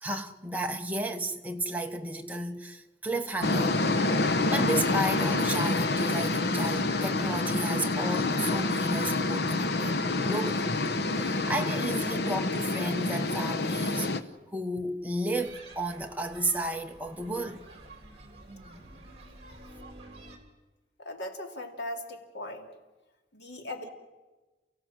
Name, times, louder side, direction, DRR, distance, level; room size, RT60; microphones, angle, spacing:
voice 1, 0.0-3.8 4.3-10.7 11.1-14.1 14.5-17.7, right 1 dB, 10° right, 1.2 m, -33 dB
sound 1, 3.4-14.2, left 2 dB, 65° left, 1.0 m, -27 dB
sound 2, 15.3-20.4, right 2 dB, 35° right, 3.5 m, -49 dB
voice 2, 21.0-22.7 23.3-23.9, left 1 dB, 85° left, 2.7 m, -38 dB
29.5 x 16.0 x 7.6 m
head